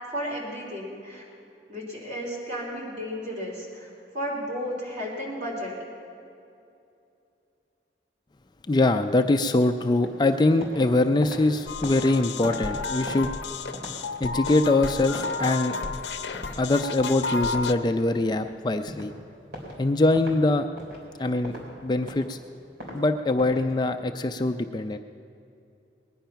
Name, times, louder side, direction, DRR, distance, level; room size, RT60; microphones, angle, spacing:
voice 1, 0.1-1.2 1.7-3.9 4.1-5.7, equal, 45° right, -3 dB, 3.5 m, -33 dB
voice 2, 8.7-13.3 14.2-15.7 16.6-19.1 19.8-20.7 21.2-21.5 21.8-22.4 22.9-25.0, left 2 dB, 25° left, 7 dB, 0.4 m, -23 dB
sound 1, 10.0-10.9 11.1-16.1 16.3-16.6 16.9-18.5 18.9-19.1 19.5-19.8 20.1-20.4 20.8-21.7 22.0-23.0 23.4-23.7, equal, 65° right, 3.7 m, -40 dB
sound 2, 11.7-17.7, left 4 dB, 90° left, 0.7 m, -32 dB
20.0 x 10.5 x 5.7 m, 2.7 s
head